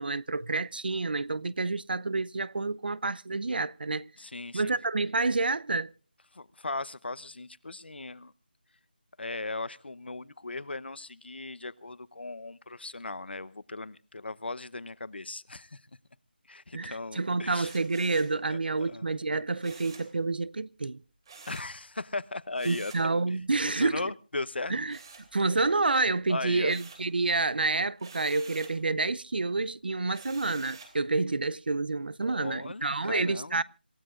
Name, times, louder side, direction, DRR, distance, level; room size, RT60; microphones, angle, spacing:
voice 1, 0.0-4.0 4.5-5.9 16.7-21.0 22.7-24.1 24.7-25.0 25.3-33.6, right 3 dB, 65° right, 0.6 m, -29 dB
voice 2, 4.2-4.8 6.3-8.3 9.2-15.8 16.5-17.7 18.5-19.1 21.5-22.9 23.3-23.4 23.6-24.7 26.3-26.7 32.2-33.6, left 3 dB, 80° left, 0.9 m, -37 dB
sound 1, 17.5-18.4 19.6-20.1 21.2-21.7 22.5-23.1 24.9-25.7 26.1-27.1 28.0-28.8 30.1-31.0, right 5 dB, 25° right, 3.1 m, -49 dB
27.0 x 15.5 x 2.5 m
figure-of-eight pair, 175°, 6 cm